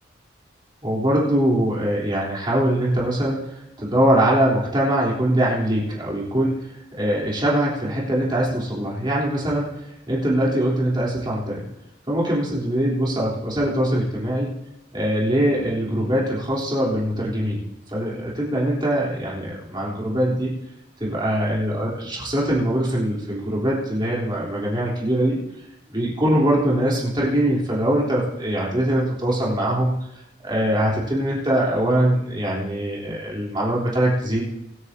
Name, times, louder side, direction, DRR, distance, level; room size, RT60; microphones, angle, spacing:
voice 1, 0.8-6.7 7.0-9.7 10.1-11.7 12.1-14.6 14.9-17.6 17.9-20.6 21.0-25.4 25.9-30.0 30.4-34.4, right 1 dB, 25° right, -5 dB, 3.5 m, -22 dB
24.0 x 9.8 x 2.8 m, 0.86 s
head